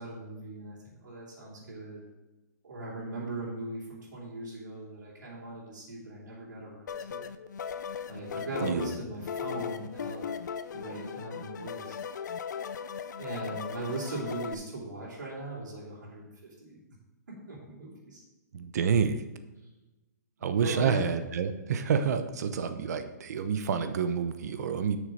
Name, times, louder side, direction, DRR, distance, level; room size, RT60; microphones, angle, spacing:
voice 1, 0.0-2.0 2.6-7.3 8.1-10.3 10.7-11.9 13.1-16.8 17.5-18.2 20.6-21.0, right 2 dB, 85° right, -5 dB, 3.4 m, -39 dB
sound 1, 6.9-14.5, left 7 dB, 75° left, 0.6 m, -38 dB
voice 2, 18.5-19.2 20.4-25.0, right 6 dB, 60° right, 9 dB, 0.9 m, -28 dB
7.5 x 6.5 x 5.1 m, 1.1 s
hypercardioid pair, 150°, 10 cm